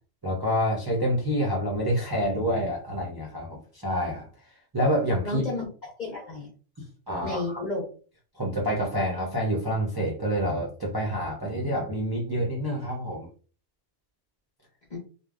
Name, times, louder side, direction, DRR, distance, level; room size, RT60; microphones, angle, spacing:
voice 1, 0.2-4.3 4.7-5.4 7.1-7.6 8.4-13.3, equal, 25° right, -4 dB, 0.5 m, -27 dB
voice 2, 5.2-6.5 7.2-7.8 14.9-15.0, left 2 dB, 40° left, -3 dB, 1.0 m, -32 dB
3.3 x 2.2 x 2.4 m, 0.39 s
omnidirectional pair, 1.2 m